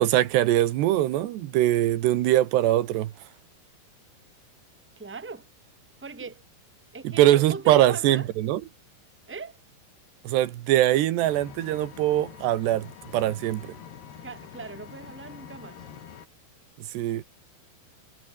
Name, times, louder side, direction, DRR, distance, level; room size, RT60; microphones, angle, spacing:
voice 1, 0.0-3.1 7.0-8.6 10.2-13.8 16.8-17.2, right 14 dB, 80° right, 3.4 m, -22 dB
voice 2, 5.0-5.5 6.0-6.4 6.9-8.3 9.3-9.6 14.2-15.8, right 4 dB, 5° right, 2.3 m, -40 dB
Engine, 11.2-16.2, left 8 dB, 70° left, 5.1 m, -45 dB
omnidirectional pair, 4.9 m